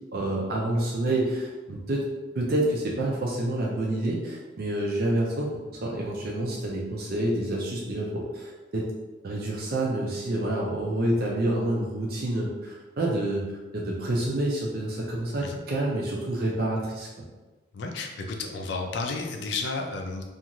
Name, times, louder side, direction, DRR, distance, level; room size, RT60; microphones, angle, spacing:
voice 1, 0.1-2.0 2.4-5.5 5.8-8.8 9.2-13.4 13.7-17.1, right 1 dB, 50° right, -3 dB, 0.4 m, -28 dB
voice 2, 17.7-20.2, left 3 dB, 70° left, 2 dB, 0.4 m, -32 dB
2.5 x 2.4 x 2.9 m, 1.2 s
head